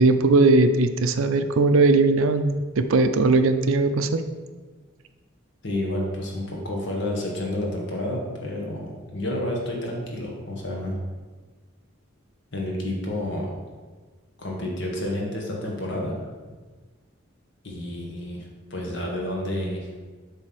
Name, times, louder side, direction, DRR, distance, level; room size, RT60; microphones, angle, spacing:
voice 1, 0.0-4.2, right 3 dB, 75° right, 9 dB, 0.5 m, -19 dB
voice 2, 5.6-10.9 12.5-13.5 14.4-16.1 17.6-18.4 18.7-19.9, left 1 dB, 55° left, -1 dB, 1.6 m, -30 dB
7.5 x 3.5 x 6.1 m, 1.4 s
head